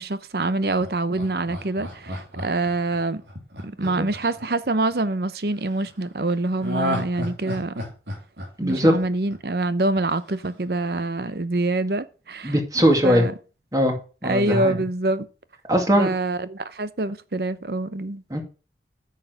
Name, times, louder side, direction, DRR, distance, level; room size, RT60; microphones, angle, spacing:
voice 1, 0.0-3.2 3.6-7.8 8.6-12.5 13.0-13.3 14.2-15.3 16.0-18.2, right 2 dB, 60° right, 0.8 m, -25 dB
Laughter, 0.8-5.0 6.6-9.6 9.9-10.0, equal, 80° right, 3.7 m, -32 dB
voice 2, 3.7-4.1 8.6-9.0 12.4-13.3 13.7-14.0 14.2-14.7 15.7-16.1 18.3-18.4, equal, 20° right, 2.2 m, -20 dB
9.4 x 6.7 x 5.0 m
head